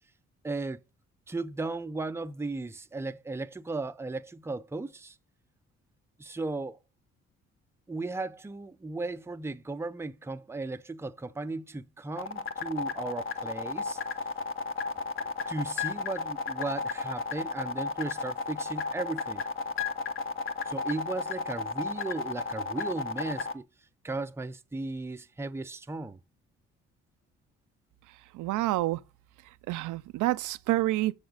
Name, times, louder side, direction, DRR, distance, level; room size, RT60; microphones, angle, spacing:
voice 1, 0.4-0.8 1.3-5.2 6.2-6.8 7.9-14.0 15.2-19.4 20.7-23.7 24.0-26.2, right 3 dB, 10° right, 0.5 m, -36 dB
sound 1, 12.2-23.5, left 4 dB, 45° left, 1.1 m, -33 dB
voice 2, 28.3-29.0 29.7-31.1, right 17 dB, 85° right, 0.5 m, -28 dB
7.0 x 6.6 x 3.9 m
cardioid pair, 90°, 30 cm